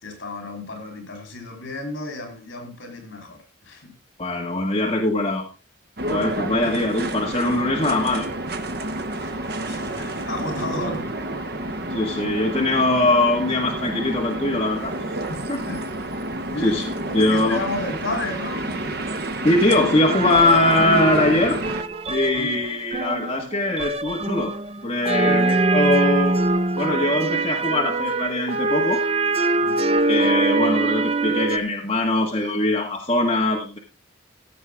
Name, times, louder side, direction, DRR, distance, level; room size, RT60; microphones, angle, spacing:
voice 1, 0.0-3.9 9.2-11.3 15.7-15.9 16.5-19.0 22.4-22.6 25.2-25.5 29.6-29.8, left 2 dB, 70° left, 3.9 m, -33 dB
voice 2, 4.2-5.4 6.1-8.3 11.9-14.9 15.3-15.6 16.6-17.6 19.4-21.6 22.1-24.5 24.8-26.4 26.8-29.0 30.1-33.8, left 2 dB, 30° left, 1.7 m, -22 dB
sound 1, 6.0-21.8, right 1 dB, 50° right, 1.0 m, -30 dB
sound 2, 20.1-31.6, right 3 dB, 30° right, 0.6 m, -23 dB
15.5 x 7.4 x 3.6 m
head